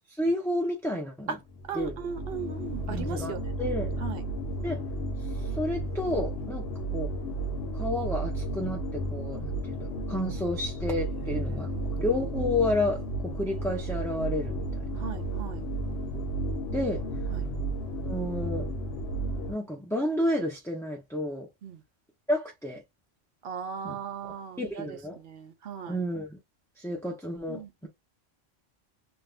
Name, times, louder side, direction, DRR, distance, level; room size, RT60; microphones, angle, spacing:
voice 1, 0.2-1.3 1.7-1.9 2.9-4.0 4.6-4.8 5.6-7.1 7.7-11.7 12.0-14.6 14.9-15.1 16.7-17.0 18.0-18.7 19.5-21.5 22.3-22.8 23.8-24.0 24.2-25.2 25.9-26.4 26.8-27.9, left 1 dB, 5° left, 0.5 m, -31 dB
sound 1, 1.5-19.5, right 1 dB, 60° left, 0.9 m, -33 dB
voice 2, 1.7-3.4 4.0-4.2 11.1-12.0 14.9-15.7 17.3-17.5 21.6-21.8 23.4-26.0 27.5-27.9, right 7 dB, 55° right, 0.8 m, -38 dB
2.6 x 2.4 x 3.4 m
omnidirectional pair, 1.3 m